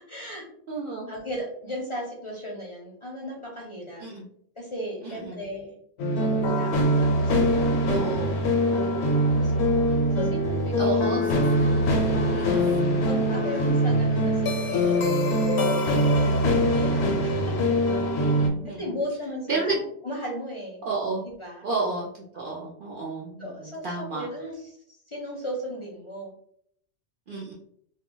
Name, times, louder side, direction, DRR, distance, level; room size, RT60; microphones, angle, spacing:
voice 1, 0.1-0.5 1.1-4.1 4.6-5.8 6.1-8.0 8.6-9.8 10.1-11.1 11.3-11.7 12.5-12.7 13.1-15.3 16.1-17.4 18.8-20.8 21.2-21.6 23.4-26.3 27.3-27.5, equal, 35° left, -3 dB, 0.5 m, -36 dB
voice 2, 0.7-1.1 4.0-4.3 5.0-5.4 7.9-8.4 10.8-11.3 12.3-13.0 16.2-16.6 18.2-18.8 19.5-19.8 20.9-21.2 21.6-24.2 27.3-27.5, right 3 dB, 60° right, -3 dB, 0.6 m, -32 dB
sound 1, 6.0-18.5, equal, 75° left, 0.8 m, -23 dB
2.2 x 2.2 x 3.7 m, 0.67 s
omnidirectional pair, 1.1 m